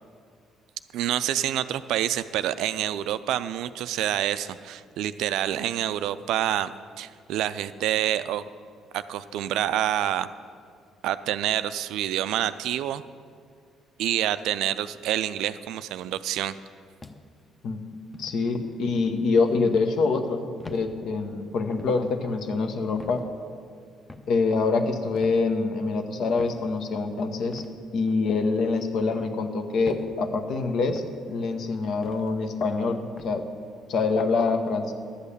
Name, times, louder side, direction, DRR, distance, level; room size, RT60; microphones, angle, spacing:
voice 1, 0.9-6.7 7.0-8.4 8.9-10.3 11.0-13.0 14.0-16.6, right 12 dB, 65° right, 14 dB, 0.3 m, -27 dB
sound 1, 17.0-17.5 18.1-18.4 19.4-19.6 20.6-20.9 21.8-22.0 23.0-23.2 24.1-24.3 25.1-25.4 26.4-26.6 27.5-27.7 28.6-28.9 29.8-30.1 30.9-31.1 32.0-32.3 33.2-33.4, left 3 dB, 20° left, 0.9 m, -44 dB
voice 2, 17.6-23.2 24.3-27.6 27.9-33.4 33.9-34.9, left 4 dB, 55° left, 7 dB, 1.0 m, -25 dB
11.5 x 8.3 x 6.7 m, 2.2 s
figure-of-eight pair, 45°, 0 cm